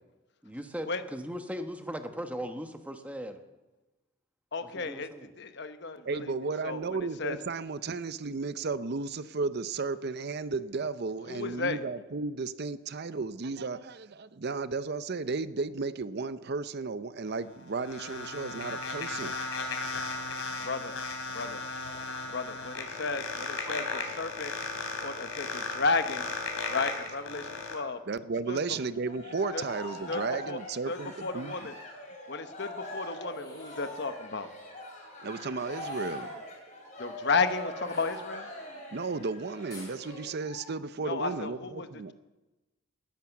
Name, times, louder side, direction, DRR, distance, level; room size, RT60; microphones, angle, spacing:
voice 1, 0.4-3.4 4.7-5.3 23.7-23.8, equal, 5° right, 7 dB, 1.1 m, -38 dB
voice 2, 4.5-6.3 6.6-6.8 7.2-7.4 11.3-11.8 20.6-21.0 21.3-21.6 22.3-24.5 25.0-26.3 26.7-28.0 28.5-28.6 29.5-29.6 30.1-30.2 30.5-30.6 30.9-31.8 32.3-34.5 37.0-38.5 41.0-42.1, left 4 dB, 55° left, 9 dB, 1.1 m, -33 dB
voice 3, 6.1-19.3 20.5-20.6 28.1-31.5 35.2-36.3 38.9-42.1, right 4 dB, 50° right, 14 dB, 0.6 m, -34 dB
sound 1, 17.3-27.7, left 4 dB, 80° left, 3.1 m, -36 dB
Cheering, 28.9-40.6, left 1 dB, 35° left, 4.2 m, -42 dB
sound 2, 33.2-34.0 35.6-36.4 37.8-38.7 39.7-40.0, left 2 dB, 20° left, 4.7 m, -51 dB
19.0 x 10.5 x 7.3 m, 1.1 s
head